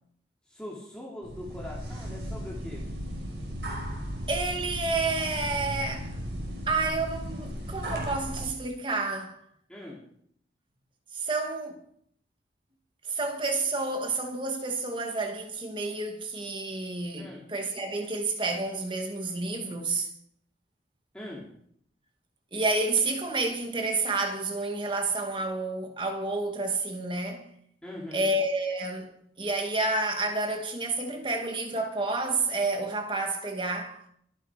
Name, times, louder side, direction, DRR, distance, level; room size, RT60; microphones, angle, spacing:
voice 1, 0.5-2.9 9.7-10.0 17.2-17.5 21.1-21.5 27.8-28.3, left 1 dB, 5° left, 3.1 m, -41 dB
sound 1, 1.2-8.5, equal, 70° right, 5.7 m, -36 dB
voice 2, 4.3-6.2 6.7-9.4 11.1-11.8 13.1-20.1 22.5-27.5 28.1-34.0, right 3 dB, 25° right, 2.3 m, -30 dB
23.5 x 9.7 x 5.2 m
head